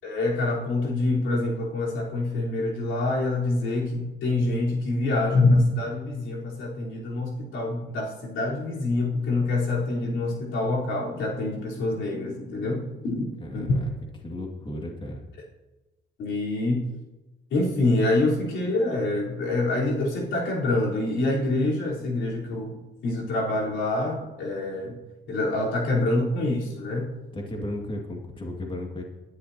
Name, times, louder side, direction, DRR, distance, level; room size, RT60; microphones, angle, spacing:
voice 1, 0.0-13.3 13.5-13.6 16.2-16.9 17.5-25.0 25.3-27.1, left 2 dB, 75° left, -4 dB, 4.2 m, -26 dB
voice 2, 13.4-13.9 14.2-15.3 27.3-29.0, left 1 dB, 25° left, 0 dB, 2.3 m, -35 dB
21.0 x 11.5 x 2.9 m, 1.1 s
cardioid pair, 90°, 20 cm